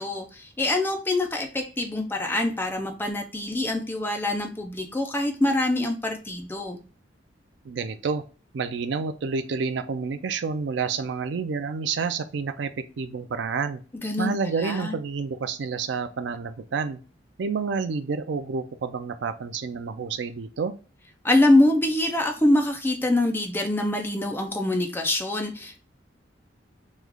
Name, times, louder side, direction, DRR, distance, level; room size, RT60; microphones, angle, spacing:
voice 1, 0.0-6.8 14.0-14.3 14.6-15.0 21.2-25.8, left 1 dB, 10° left, 3 dB, 0.5 m, -24 dB
voice 2, 7.6-8.2 8.5-13.8 14.2-17.0 17.4-20.7, right 5 dB, 70° right, 10 dB, 0.4 m, -29 dB
3.1 x 2.3 x 3.6 m, 0.37 s
head